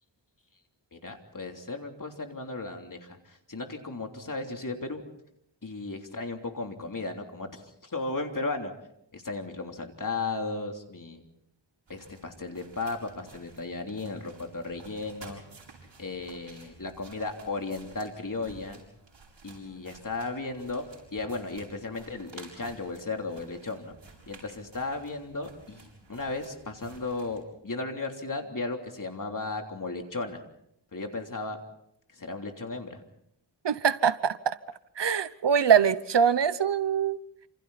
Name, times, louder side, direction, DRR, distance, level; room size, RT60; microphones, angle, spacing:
voice 1, 0.9-5.0 5.6-8.7 9.1-11.2 11.9-15.4 16.0-18.8 19.4-23.9 24.3-30.4 30.9-31.6 32.1-33.0, left 3 dB, 45° left, 3.3 m, -35 dB
sound 1, 11.9-27.4, right 3 dB, 85° right, 7.3 m, -53 dB
voice 2, 33.6-34.6 35.0-37.2, right 7 dB, 65° right, 1.0 m, -23 dB
28.5 x 27.5 x 4.2 m
wide cardioid pair, 95°, 45 cm